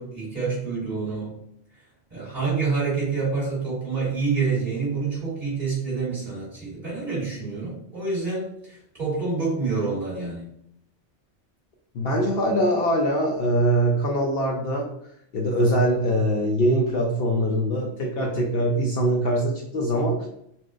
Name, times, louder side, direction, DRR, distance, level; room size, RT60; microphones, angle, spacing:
voice 1, 0.0-1.3 2.1-10.4, right 4 dB, 35° right, -8 dB, 1.7 m, -27 dB
voice 2, 11.9-14.9 15.3-20.3, right 1 dB, 65° left, -1 dB, 0.7 m, -23 dB
4.2 x 2.1 x 2.4 m, 0.73 s
omnidirectional pair, 1.2 m